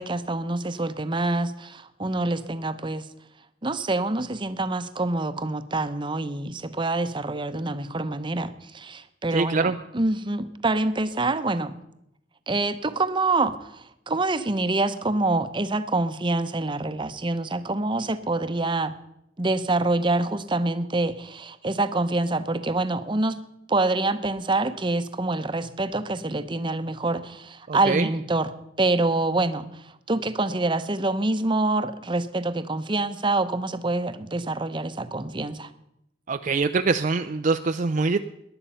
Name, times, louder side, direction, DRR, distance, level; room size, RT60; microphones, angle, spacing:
voice 1, 0.0-3.1 3.6-11.8 12.5-18.9 19.4-23.4 23.7-28.5 28.8-35.7, right 2 dB, 25° right, 12 dB, 0.8 m, -26 dB
voice 2, 9.3-9.8 27.7-28.1 36.3-38.2, right 4 dB, 45° right, 8 dB, 0.5 m, -24 dB
18.5 x 11.0 x 5.6 m, 0.81 s
head